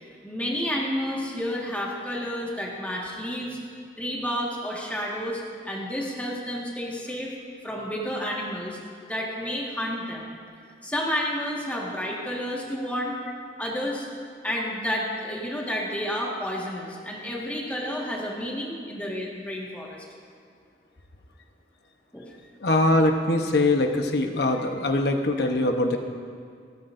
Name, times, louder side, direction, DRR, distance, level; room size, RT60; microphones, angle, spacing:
voice 1, 0.2-3.6 4.0-7.3 7.6-8.8 9.1-10.4 10.8-13.2 13.6-14.1 14.4-20.0 22.1-22.3, equal, 10° left, -4 dB, 1.7 m, -30 dB
voice 2, 22.6-26.0, left 2 dB, 65° left, 4 dB, 1.0 m, -22 dB
29.5 x 9.9 x 2.6 m, 2.2 s
head